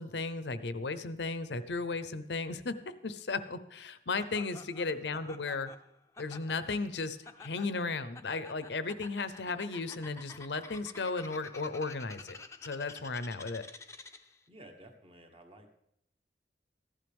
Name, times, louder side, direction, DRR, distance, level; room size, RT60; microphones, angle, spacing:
voice 1, 0.0-2.8 3.0-5.7 6.2-13.6, left 3 dB, 75° left, 13 dB, 0.7 m, -35 dB
Laughter, 4.2-14.4, left 3 dB, 15° left, 0.6 m, -50 dB
voice 2, 14.5-15.7, right 1 dB, 30° right, 4 dB, 1.3 m, -53 dB
15.0 x 11.0 x 3.5 m, 0.76 s
head